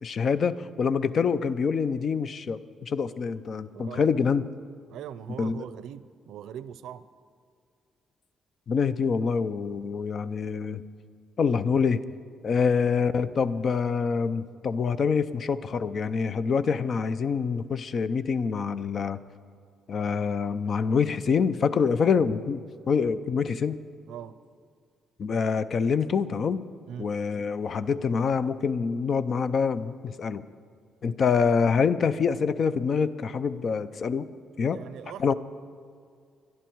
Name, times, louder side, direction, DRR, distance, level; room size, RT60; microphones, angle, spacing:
voice 1, 0.0-4.5 5.4-5.6 8.7-10.8 11.4-12.0 12.4-19.2 19.9-23.8 25.2-26.6 27.0-30.4 31.0-34.3 34.6-34.8 35.2-35.3, left 5 dB, 40° left, 14 dB, 0.5 m, -26 dB
voice 2, 3.7-4.1 4.9-7.0 24.1-24.4 26.9-27.1 34.7-35.3, right 9 dB, 85° right, 15 dB, 0.5 m, -41 dB
24.5 x 10.5 x 4.6 m, 2.3 s
cardioid pair, 175°, 0 cm